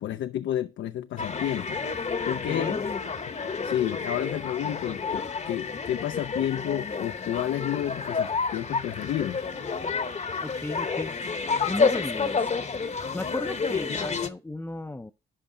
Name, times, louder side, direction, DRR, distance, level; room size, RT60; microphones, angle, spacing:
voice 1, 0.0-1.8 2.2-2.7 3.6-9.5, left 11 dB, 70° left, 0.4 m, -30 dB
sound 1, 1.2-14.3, left 5 dB, 35° left, 0.8 m, -30 dB
voice 2, 2.5-2.8 10.4-11.1 11.6-12.5 13.1-15.1, left 2 dB, 10° left, 0.4 m, -35 dB
11.0 x 4.5 x 3.8 m
cardioid pair, 75°, 20 cm